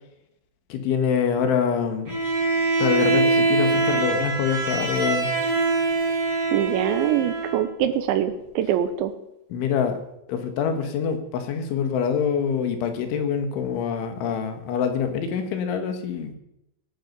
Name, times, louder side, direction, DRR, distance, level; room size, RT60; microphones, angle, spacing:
voice 1, 0.7-2.2 2.8-5.3 9.5-10.0 10.3-16.4, left 7 dB, 75° left, 7 dB, 3.9 m, -25 dB
Bowed string instrument, 2.1-7.7, right 3 dB, 25° right, 4.1 m, -23 dB
voice 2, 6.5-9.1, right 10 dB, 80° right, 10 dB, 3.0 m, -24 dB
19.5 x 11.5 x 5.4 m, 0.81 s
omnidirectional pair, 5.7 m